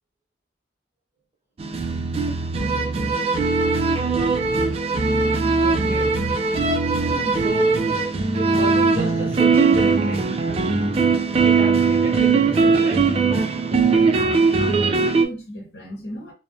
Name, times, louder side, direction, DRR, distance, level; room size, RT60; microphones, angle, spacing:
sound 1, 1.6-15.2, right 4 dB, 35° right, 0.3 m, -20 dB
voice 1, 5.6-6.2 7.4-7.8 8.4-10.4 11.4-13.1, right 2 dB, 15° right, 0.9 m, -31 dB
voice 2, 7.0-7.5 14.0-16.3, equal, 65° left, 0.9 m, -35 dB
2.4 x 2.0 x 2.5 m
head